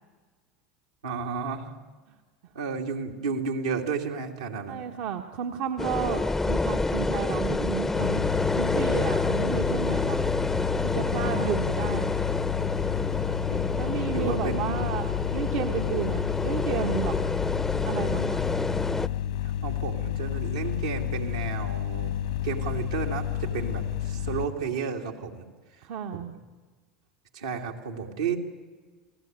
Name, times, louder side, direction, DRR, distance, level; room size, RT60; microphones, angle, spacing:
voice 1, 1.0-1.7 2.5-4.9 11.2-11.6 13.5-13.7 14.1-14.9 19.4-22.1 22.4-25.4 26.1-26.2 27.3-28.4, right 5 dB, 85° right, 1 dB, 2.7 m, -32 dB
voice 2, 4.7-8.3 8.5-10.3 10.8-12.1 13.8-17.2 17.8-18.4 25.8-26.4, right 8 dB, 60° right, 3 dB, 1.3 m, -32 dB
sound 1, 5.8-19.1, left 2 dB, 10° left, 0.8 m, -28 dB
sound 2, 7.9-24.5, left 11 dB, 75° left, 2.1 m, -30 dB
28.5 x 17.5 x 9.5 m, 1.4 s
hypercardioid pair, 80°, 3 cm